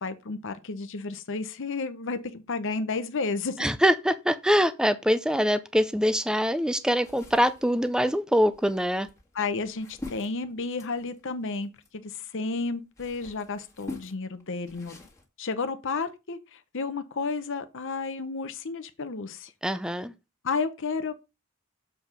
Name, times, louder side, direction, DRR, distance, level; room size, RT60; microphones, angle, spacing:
voice 1, 0.0-3.7 9.3-14.9 15.4-19.5 20.4-21.2, left 4 dB, 60° left, 0.8 m, -32 dB
voice 2, 3.6-9.1 19.6-20.1, equal, 5° right, 0.5 m, -24 dB
sound 1, 7.0-12.2 12.7-15.2, left 2 dB, 15° left, 1.7 m, -45 dB
7.4 x 4.6 x 5.0 m
head